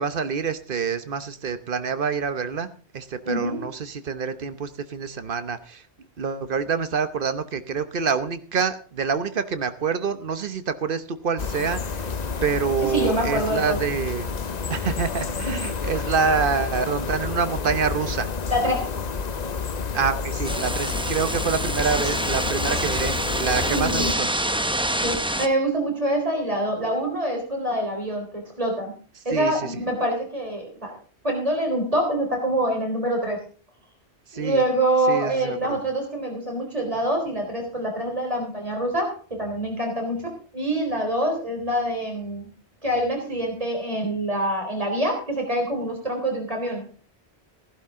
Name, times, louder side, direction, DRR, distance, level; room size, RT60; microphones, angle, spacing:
voice 1, 0.0-2.7 2.9-5.8 6.2-12.1 12.4-14.3 14.7-18.3 19.9-24.3 29.3-29.8 34.3-34.6 35.1-35.8, right 5 dB, 55° right, 11 dB, 1.2 m, -26 dB
voice 2, 3.2-3.7 12.8-13.8 15.5-15.6 18.5-18.9 23.7-24.1 25.0-28.9 29.2-31.0 31.2-33.4 34.3-42.5 42.8-46.8, right 1 dB, 35° right, 2 dB, 4.1 m, -25 dB
sound 1, 11.4-24.1, left 5 dB, 45° left, 0.8 m, -29 dB
sound 2, 20.4-25.5, right 1 dB, 5° right, 0.6 m, -27 dB
15.5 x 11.5 x 3.7 m, 0.39 s
omnidirectional pair, 1.1 m